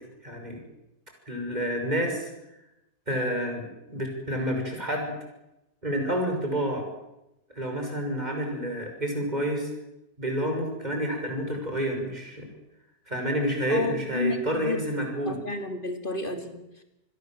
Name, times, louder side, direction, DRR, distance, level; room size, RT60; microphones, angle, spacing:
voice 1, 0.2-0.6 1.3-2.3 3.1-5.1 5.8-6.8 7.5-9.7 10.2-12.4 13.1-15.4, equal, 25° right, 3 dB, 6.4 m, -29 dB
voice 2, 13.7-14.8 15.2-16.8, left 2 dB, 30° left, 7 dB, 3.0 m, -32 dB
27.5 x 21.0 x 7.8 m, 0.92 s
omnidirectional pair, 1.8 m